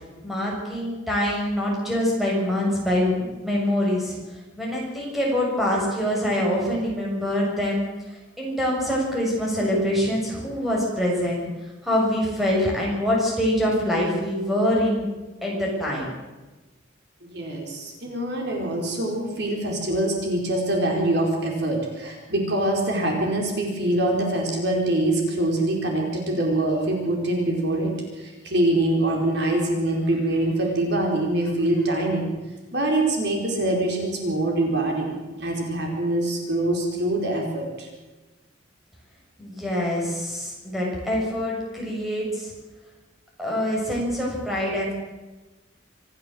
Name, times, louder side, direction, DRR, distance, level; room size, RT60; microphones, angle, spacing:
voice 1, 0.2-4.2 4.6-7.9 8.1-11.4 11.8-15.1 15.4-16.1 39.4-42.5 43.4-44.9, left 1 dB, ahead, -3 dB, 7.1 m, -24 dB
voice 2, 17.2-27.9 28.2-32.3 32.7-37.9, right 1 dB, 55° right, 0 dB, 4.7 m, -24 dB
26.0 x 15.0 x 7.9 m, 1.2 s
head